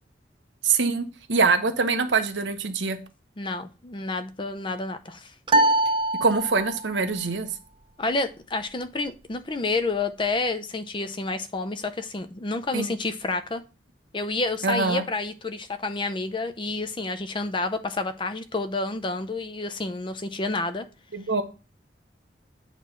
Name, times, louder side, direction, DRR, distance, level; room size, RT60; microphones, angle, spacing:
voice 1, 0.6-3.0 6.2-7.5 12.7-12.9 14.6-15.0 21.1-21.4, right 4 dB, 90° right, 0.9 m, -24 dB
voice 2, 3.4-5.3 8.0-13.6 14.1-20.9, left 3 dB, 25° left, 0.5 m, -29 dB
sound 1, 5.5-7.0, right 2 dB, 25° right, 0.4 m, -23 dB
8.2 x 3.1 x 5.6 m
head